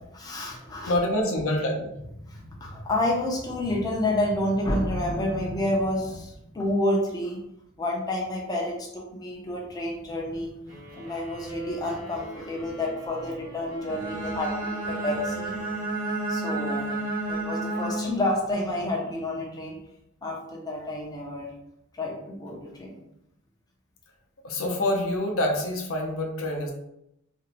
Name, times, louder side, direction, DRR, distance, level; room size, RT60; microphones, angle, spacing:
voice 1, 0.2-0.9 2.2-7.4 7.8-15.5 16.3-17.0 17.3-19.8 20.2-21.5 21.9-23.0, left 1 dB, 20° left, -2 dB, 0.4 m, -29 dB
voice 2, 0.9-1.9 24.4-26.7, left 1 dB, 70° left, 1 dB, 0.5 m, -26 dB
sound 1, 10.7-17.1, right 2 dB, 80° right, 1.0 m, -46 dB
Bowed string instrument, 13.8-18.3, right 2 dB, 40° right, 0.4 m, -30 dB
2.5 x 2.0 x 2.8 m, 0.81 s
head